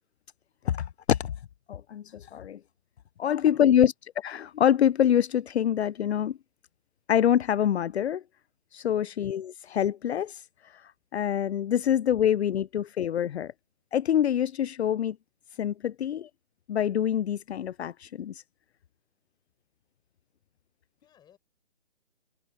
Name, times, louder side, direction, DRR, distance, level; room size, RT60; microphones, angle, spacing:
voice 1, 0.7-1.3 1.7-2.6 3.2-6.4 7.1-8.2 8.7-10.4 11.1-13.5 13.9-15.2 15.6-16.3 16.7-18.4, left 10 dB, 75° left, 0.5 m, -25 dB
voice 2, 3.2-3.9 8.9-9.2 11.7-11.9 21.0-21.4, left 9 dB, 10° left, 7.1 m, -61 dB
hypercardioid pair, 150°, 33 cm